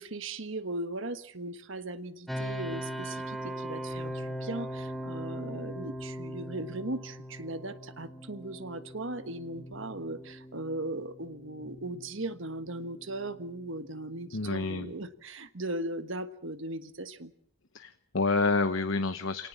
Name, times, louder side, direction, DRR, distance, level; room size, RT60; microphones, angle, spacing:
voice 1, 0.0-17.3, right 2 dB, 60° right, 11 dB, 1.4 m, -38 dB
sound 1, 2.3-15.1, equal, ahead, 1.7 m, -41 dB
voice 2, 14.3-14.9 17.7-19.5, left 3 dB, 65° left, 9 dB, 1.0 m, -28 dB
27.5 x 18.5 x 7.3 m, 0.67 s
head